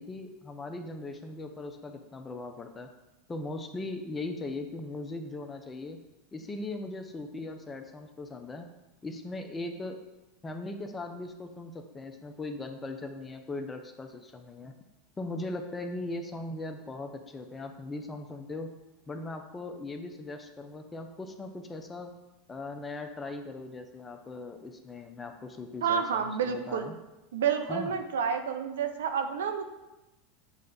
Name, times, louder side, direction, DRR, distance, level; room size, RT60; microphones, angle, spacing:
voice 1, 0.0-2.9 3.3-6.0 6.3-8.7 9.0-10.0 10.4-14.8 15.2-18.7 19.1-22.1 22.5-27.0 27.7-27.9, left 2 dB, 20° left, 5 dB, 0.6 m, -39 dB
voice 2, 25.8-26.9 27.3-29.6, right 7 dB, 85° right, 7 dB, 0.5 m, -29 dB
7.1 x 3.3 x 4.0 m, 1.0 s
hypercardioid pair, 105°, 0 cm